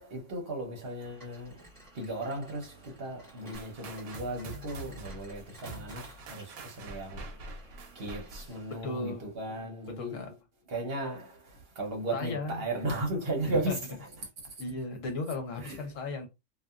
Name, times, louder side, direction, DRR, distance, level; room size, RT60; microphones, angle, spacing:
voice 1, 0.0-1.6 1.9-7.4 7.9-10.2 10.7-13.8 14.4-14.5 15.6-15.8, right 1 dB, 50° right, 1.0 m, -36 dB
sound 1, 1.0-8.8, right 1 dB, 15° right, 1.4 m, -55 dB
sound 2, 3.5-8.6, right 3 dB, 80° right, 1.1 m, -45 dB
voice 2, 8.8-9.3 9.9-10.3 12.1-12.7 13.4-13.8 14.6-16.3, left 3 dB, 65° left, 1.2 m, -35 dB
2.7 x 2.6 x 2.3 m
omnidirectional pair, 1.5 m